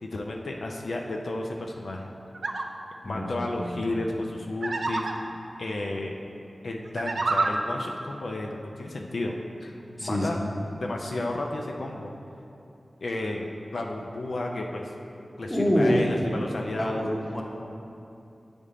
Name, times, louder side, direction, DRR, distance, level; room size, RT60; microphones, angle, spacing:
voice 1, 0.1-2.1 3.0-5.1 5.6-6.1 6.6-9.7 10.0-10.4 10.8-12.1 13.0-13.4 13.7-14.9 15.4-17.1, left 2 dB, 80° left, 0 dB, 0.4 m, -32 dB
sound 1, 2.3-2.6 4.6-5.1 6.9-7.5, right 3 dB, 80° right, 0.4 m, -27 dB
voice 2, 3.0-3.8 10.0-10.6 15.5-16.0 16.8-17.4, equal, 15° left, -1 dB, 0.9 m, -26 dB
8.3 x 3.5 x 3.7 m, 2.7 s
wide cardioid pair, 60°, 0 cm